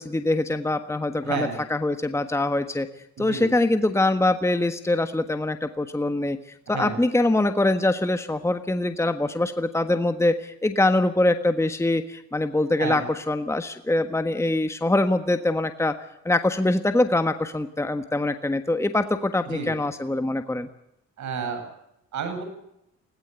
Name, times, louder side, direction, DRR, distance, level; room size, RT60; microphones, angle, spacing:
voice 1, 0.0-2.9 3.2-6.4 6.7-16.0 16.2-20.7, left 2 dB, 10° left, 8 dB, 1.4 m, -23 dB
voice 2, 1.2-1.6 3.2-3.5 6.7-7.0 12.8-13.1 19.5-19.7 21.2-21.6 22.1-22.4, right 5 dB, 70° right, 7 dB, 7.8 m, -30 dB
21.0 x 17.5 x 8.2 m, 0.80 s
cardioid pair, 90°, 30 cm